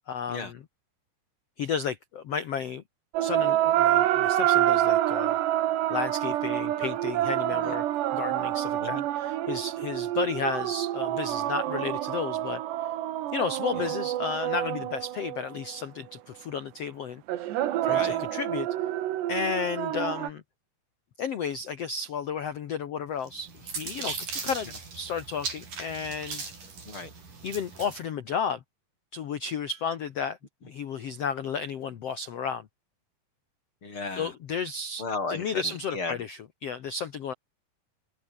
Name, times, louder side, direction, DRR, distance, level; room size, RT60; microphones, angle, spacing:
voice 1, 0.1-0.6 1.6-2.8 3.2-5.4 5.9-7.8 8.1-12.9 13.3-17.2 17.8-18.7 19.3-20.4 21.2-24.1 24.4-26.4 27.4-28.6 29.1-30.4 30.7-32.7 34.2-37.3, left 6 dB, 80° left, 1.3 m, -33 dB
sound 1, 3.1-15.7 17.3-20.3, right 13 dB, 85° right, 3.7 m, -27 dB
voice 2, 17.8-18.2 26.8-27.1 33.8-34.3 35.0-36.2, left 3 dB, 30° left, 6.7 m, -35 dB
sound 2, 23.2-28.0, right 4 dB, 50° right, 7.5 m, -38 dB
omnidirectional pair, 4.9 m